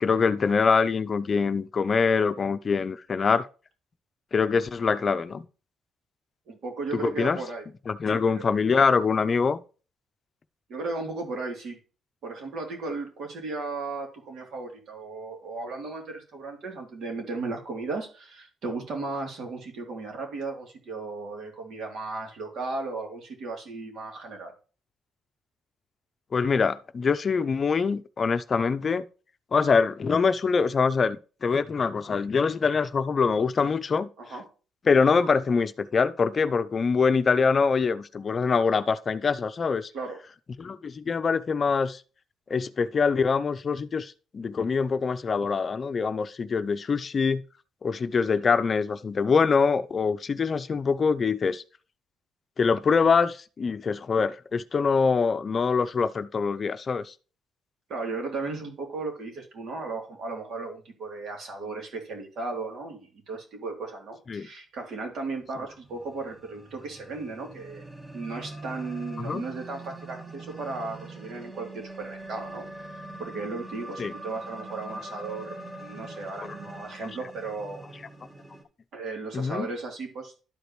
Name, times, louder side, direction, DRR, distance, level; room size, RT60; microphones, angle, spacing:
voice 1, 0.0-3.5 4.3-5.5 6.9-7.4 7.9-9.6 26.3-29.0 29.5-34.1 34.9-39.9 40.6-42.0 42.5-47.4 47.8-51.6 52.6-57.1 64.3-64.5 69.3-69.4 74.0-74.1 79.3-79.7, left 5 dB, 40° left, 0.5 m, -24 dB
voice 2, 6.5-7.6 8.1-8.4 10.7-11.8 12.2-24.5 34.2-34.4 39.9-40.2 57.9-67.8 68.1-72.7 73.2-77.8 78.9-80.4, right 3 dB, 65° right, 2.9 m, -35 dB
sound 1, 65.5-78.6, right 2 dB, 25° right, 1.7 m, -43 dB
12.0 x 5.0 x 3.1 m
cardioid pair, 90°, 0 cm